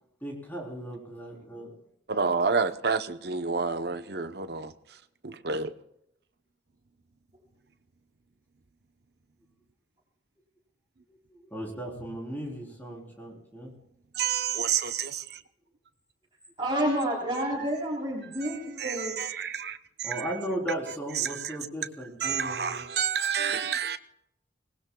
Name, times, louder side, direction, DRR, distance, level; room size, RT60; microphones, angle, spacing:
voice 1, 0.2-1.8 11.5-13.7 20.0-22.8, right 1 dB, 10° left, 3.9 m, -36 dB
voice 2, 2.1-5.0 5.2-5.7 14.1-15.4 18.4-20.3 21.2-21.6 22.2-24.0, right 6 dB, 60° right, 0.9 m, -29 dB
voice 3, 16.6-19.2, right 1 dB, 25° right, 3.6 m, -29 dB
26.0 x 19.5 x 2.3 m
head